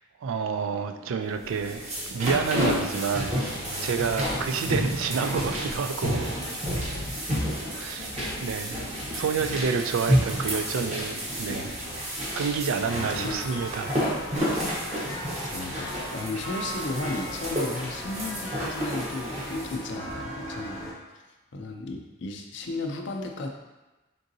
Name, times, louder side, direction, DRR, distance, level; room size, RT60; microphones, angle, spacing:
voice 1, 0.2-1.8 2.1-3.4 3.8-6.4 7.8-8.1 8.4-8.9 9.1-11.7 12.4-13.9, right 5 dB, 85° right, 7 dB, 0.3 m, -29 dB
sound 1, 0.5-11.6, equal, 50° right, 1.4 m, -49 dB
sound 2, 1.4-19.8, equal, 30° right, 0.8 m, -30 dB
voice 2, 12.8-13.4 14.4-14.7 15.4-20.9 21.1-21.2 21.5-23.5, left 2 dB, 60° left, 3 dB, 0.5 m, -34 dB
sound 3, 12.8-20.9, equal, 15° left, 0.6 m, -38 dB
3.8 x 3.7 x 2.7 m, 1.1 s
head